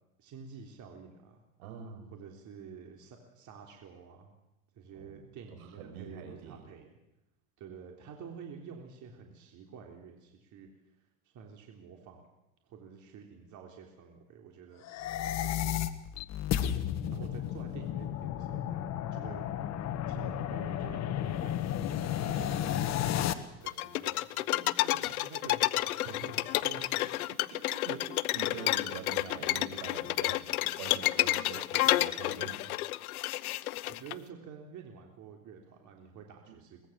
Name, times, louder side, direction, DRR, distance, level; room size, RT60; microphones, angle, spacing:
voice 1, 0.2-1.4 2.1-4.3 4.7-6.9 7.6-10.7 11.2-12.3 12.6-14.8 15.2-15.8 17.1-18.8 19.1-19.5 20.1-26.9 27.5-27.8 28.1-28.2 33.9-36.8, right 6 dB, 45° right, 2 dB, 3.8 m, -49 dB
voice 2, 1.6-2.1 4.9-5.3 5.6-6.6 26.1-26.3 27.5-27.6 27.8-30.4 30.8-32.7 36.5-36.6, right 7 dB, 75° right, 7 dB, 5.8 m, -45 dB
sound 1, 14.8-23.3, left 11 dB, 40° left, 1.5 m, -33 dB
sound 2, 23.7-34.1, left 16 dB, 90° left, 1.0 m, -30 dB
23.5 x 20.0 x 7.5 m, 0.91 s
supercardioid pair, 125°, 42 cm